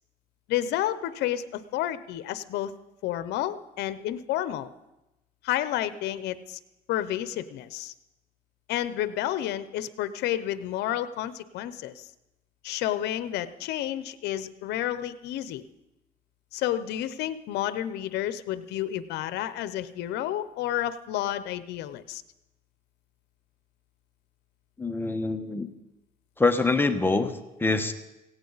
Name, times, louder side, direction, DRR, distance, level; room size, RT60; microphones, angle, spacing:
voice 1, 0.5-2.7 3.0-4.7 5.4-6.6 6.9-7.9 8.7-12.1 12.6-15.6 16.5-22.2, left 12 dB, 80° left, 14 dB, 0.7 m, -30 dB
voice 2, 24.8-25.7 26.4-27.3 27.6-27.9, left 3 dB, 10° left, 7 dB, 1.2 m, -24 dB
17.0 x 16.5 x 4.0 m, 0.95 s
cardioid pair, 110°, 17 cm